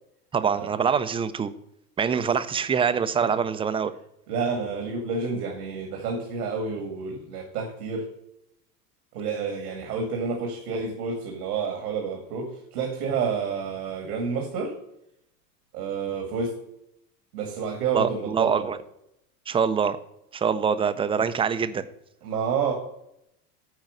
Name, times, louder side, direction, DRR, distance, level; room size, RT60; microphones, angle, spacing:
voice 1, 0.3-1.5 2.0-3.9 17.9-18.8 19.5-20.0 20.3-21.8, right 6 dB, 15° right, 0.4 m, -24 dB
voice 2, 4.3-8.1 9.1-14.8 15.7-16.6 17.3-18.7 22.2-22.7, right 5 dB, 90° right, 2.1 m, -29 dB
9.0 x 4.7 x 6.4 m
supercardioid pair, 105°, 45 cm